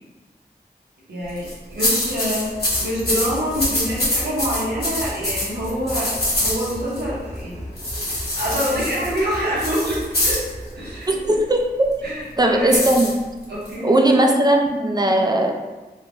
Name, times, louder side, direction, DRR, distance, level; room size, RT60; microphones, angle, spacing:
voice 1, 1.1-7.6 7.9-10.5 10.8-11.1 12.0-12.8 13.5-13.9, equal, 80° right, -7 dB, 0.9 m, -26 dB
sound 1, 1.3-1.5 1.8-7.0 7.8-10.5 12.7-13.7, left 1 dB, 70° left, 1.0 m, -24 dB
sound 2, 2.5-11.0, equal, 40° left, 0.5 m, -36 dB
voice 2, 11.1-11.9 12.4-13.3 13.8-15.5, right 1 dB, 25° right, 2 dB, 0.4 m, -18 dB
3.0 x 2.1 x 2.5 m, 1.2 s
wide cardioid pair, 55°, 17 cm